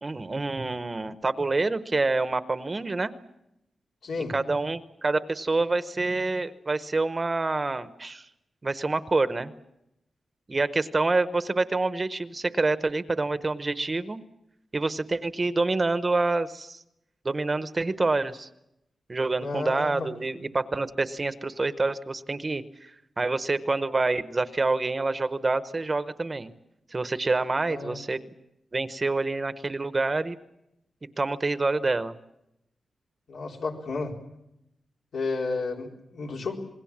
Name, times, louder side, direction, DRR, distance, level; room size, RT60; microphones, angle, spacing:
voice 1, 0.0-3.1 4.3-8.2 8.6-9.5 10.5-14.2 14.7-16.8 17.2-18.5 19.1-26.5 26.9-28.3 28.7-30.4 31.2-32.1, right 3 dB, 25° right, 11 dB, 0.9 m, -27 dB
voice 2, 4.0-4.3 19.4-20.1 27.7-28.0 33.3-34.1 35.1-36.6, left 3 dB, 90° left, 0 dB, 4.2 m, -32 dB
27.5 x 21.0 x 7.3 m, 0.84 s
wide cardioid pair, 170°, 0 cm